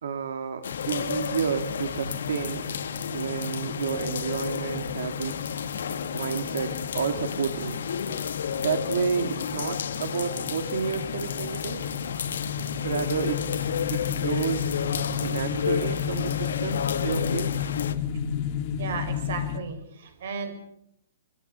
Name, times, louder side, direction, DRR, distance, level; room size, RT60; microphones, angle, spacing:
voice 1, 0.0-2.6 3.1-5.6 6.1-7.8 8.6-11.8 12.8-14.8 15.2-17.5, right 6 dB, 65° right, 8 dB, 2.3 m, -30 dB
sound 1, 0.6-17.9, left 7 dB, 70° left, 1.9 m, -32 dB
sound 2, 0.7-19.6, left 8 dB, 25° left, 2.0 m, -33 dB
voice 2, 18.8-20.5, right 5 dB, 50° right, 8 dB, 6.1 m, -34 dB
26.0 x 22.0 x 6.9 m, 0.76 s
hypercardioid pair, 180°, 0 cm